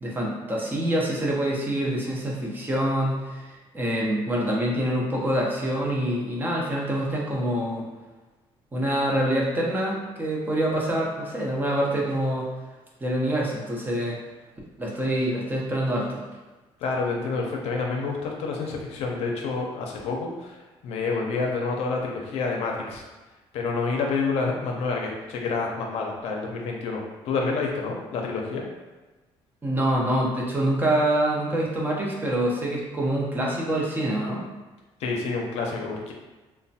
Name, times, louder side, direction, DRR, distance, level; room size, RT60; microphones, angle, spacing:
voice 1, 0.0-7.9 8.7-12.5 13.0-14.2 14.8-16.2 29.6-34.5, right 1 dB, 20° right, -3 dB, 0.6 m, -26 dB
voice 2, 16.8-20.6 20.8-23.0 23.5-28.7 35.0-36.1, left 4 dB, 80° left, 0 dB, 0.5 m, -28 dB
3.0 x 2.1 x 2.7 m, 1.2 s
cardioid pair, 115°, 11 cm